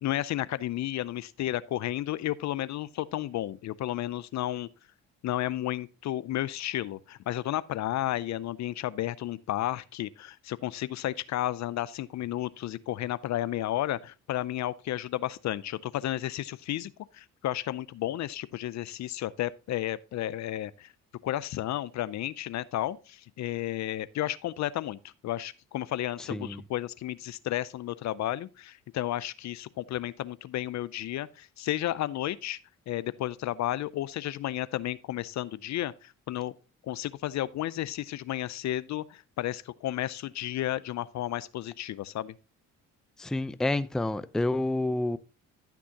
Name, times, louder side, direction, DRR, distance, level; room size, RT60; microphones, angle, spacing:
voice 1, 0.0-4.7 5.2-20.9 21.2-32.6 32.9-36.5 36.8-42.3, left 13 dB, 55° left, 0.5 m, -32 dB
voice 2, 26.3-26.6 43.2-45.2, left 2 dB, ahead, 0.4 m, -29 dB
13.5 x 6.1 x 2.8 m
cardioid pair, 80°, 32 cm